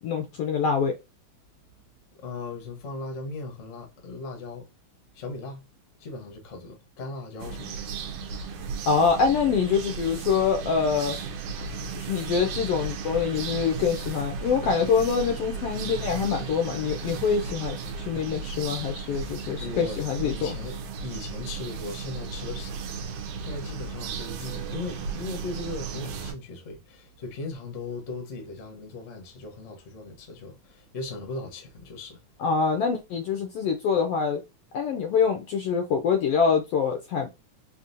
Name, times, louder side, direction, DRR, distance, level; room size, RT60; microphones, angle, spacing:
voice 1, 0.0-1.0 8.9-11.2 11.9-20.6 32.4-34.4 34.7-37.3, left 6 dB, 75° left, 1.5 m, -25 dB
voice 2, 2.1-4.7 5.1-5.7 6.0-8.2 19.6-22.9 23.4-32.2, left 3 dB, 50° left, 0.9 m, -38 dB
sound 1, 7.4-26.3, right 5 dB, 70° right, 1.7 m, -35 dB
5.3 x 2.8 x 2.6 m
omnidirectional pair, 3.3 m